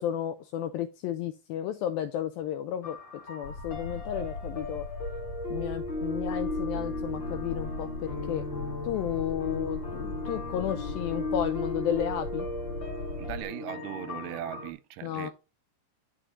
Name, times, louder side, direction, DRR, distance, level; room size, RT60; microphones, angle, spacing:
voice 1, 0.0-3.0 3.3-4.9 5.5-8.4 8.8-12.5 15.0-15.3, left 11 dB, 90° left, 2.1 m, -33 dB
sound 1, 2.8-14.7, left 2 dB, 35° left, 2.4 m, -36 dB
sound 2, 3.4-13.4, left 2 dB, 55° left, 1.9 m, -39 dB
voice 2, 13.2-15.3, right 13 dB, 85° right, 2.4 m, -38 dB
11.5 x 4.7 x 3.7 m
omnidirectional pair, 4.8 m